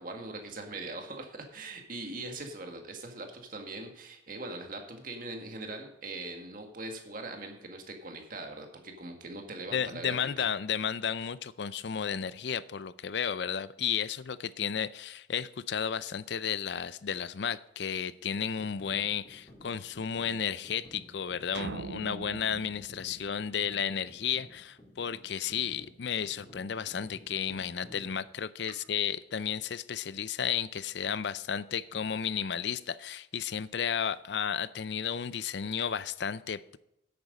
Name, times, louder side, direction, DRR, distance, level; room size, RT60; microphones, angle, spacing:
voice 1, 0.0-10.5, right 2 dB, 50° right, 3 dB, 1.8 m, -41 dB
voice 2, 9.7-36.8, left 8 dB, 70° left, 16 dB, 0.5 m, -33 dB
sound 1, 18.6-28.2, equal, 30° left, 3.1 m, -54 dB
sound 2, 21.5-24.0, right 5 dB, 75° right, 0.4 m, -43 dB
10.5 x 8.7 x 5.3 m, 0.84 s
head